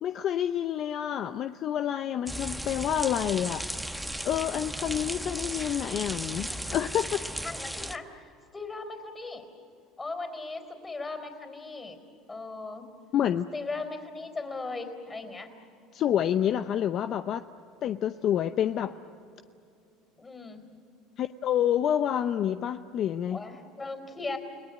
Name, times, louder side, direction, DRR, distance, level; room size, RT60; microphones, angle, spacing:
voice 1, 0.0-3.7 4.2-7.2 13.1-13.5 15.9-17.4 17.8-18.9 21.2-23.4, left 10 dB, 50° left, 10 dB, 0.7 m, -28 dB
sound 1, 2.3-8.0, equal, 5° right, 1.1 m, -36 dB
voice 2, 7.4-8.3 8.5-9.5 10.0-12.0 12.3-12.9 13.5-15.5 20.2-20.6 23.3-24.4, left 3 dB, 20° left, 7 dB, 3.9 m, -38 dB
30.0 x 19.0 x 9.4 m, 2.5 s
supercardioid pair, 100°, 0 cm